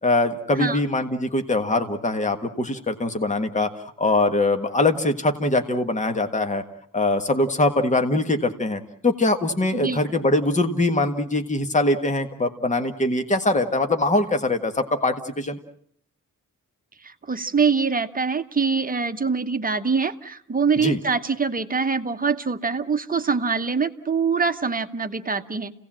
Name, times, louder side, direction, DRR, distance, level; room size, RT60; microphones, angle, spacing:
voice 1, 0.0-3.7 4.0-6.6 6.9-15.6 20.8-21.0, left 2 dB, 25° left, 6 dB, 1.6 m, -22 dB
voice 2, 17.0-25.7, right 5 dB, 25° right, 8 dB, 1.0 m, -24 dB
29.5 x 17.5 x 7.5 m, 0.66 s
wide cardioid pair, 160°, 31 cm